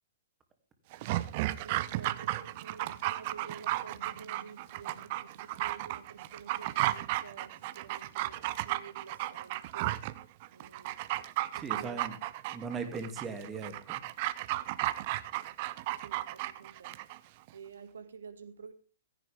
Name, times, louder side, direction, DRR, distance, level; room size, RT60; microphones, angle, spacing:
Dog, 0.9-17.2 17.5-17.6, right 17 dB, 45° right, 0.8 m, -34 dB
sound 1, 1.5-12.4, right 1 dB, 65° left, 6.8 m, -61 dB
voice 1, 1.5-10.1 10.5-11.0 11.5-12.0 15.9-16.9 17.5-18.7, right 6 dB, 65° right, 2.2 m, -50 dB
voice 2, 11.5-12.2 12.5-14.0, right 4 dB, 20° right, 2.6 m, -39 dB
16.5 x 15.0 x 3.6 m
figure-of-eight pair, 110°, 0 cm